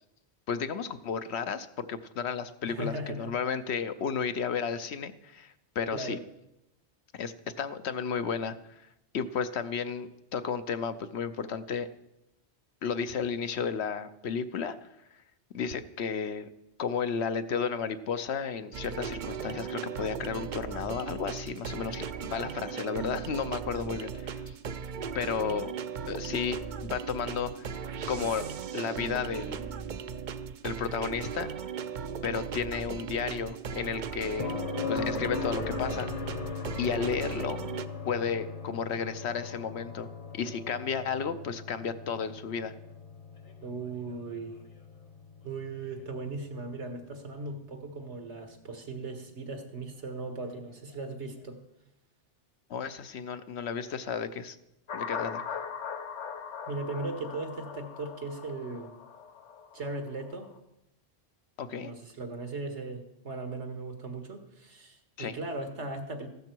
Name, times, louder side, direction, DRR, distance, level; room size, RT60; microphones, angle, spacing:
voice 1, 0.5-6.2 7.1-8.9 9.1-11.9 12.8-14.9 15.5-16.5 16.8-24.5 25.1-25.7 26.1-27.8 28.1-28.5 28.7-29.7 30.6-31.5 32.2-34.6 34.9-36.1 36.8-37.6 38.0-42.7 52.7-54.6 54.9-55.4 61.6-61.9 65.2-65.3, left 6 dB, 70° left, 11 dB, 1.0 m, -33 dB
voice 2, 2.7-3.3 5.9-6.2 43.6-44.6 45.4-51.6 56.7-59.0 59.7-60.5 61.8-66.3, right 3 dB, 80° right, 6 dB, 1.9 m, -38 dB
sound 1, 18.7-37.9, right 6 dB, 50° right, 0.6 m, -37 dB
sound 2, 34.4-48.2 50.5-50.6, left 5 dB, 35° left, 0.9 m, -39 dB
sound 3, 54.9-60.5, left 6 dB, 90° left, 1.3 m, -40 dB
15.0 x 12.0 x 4.6 m, 0.88 s
omnidirectional pair, 1.2 m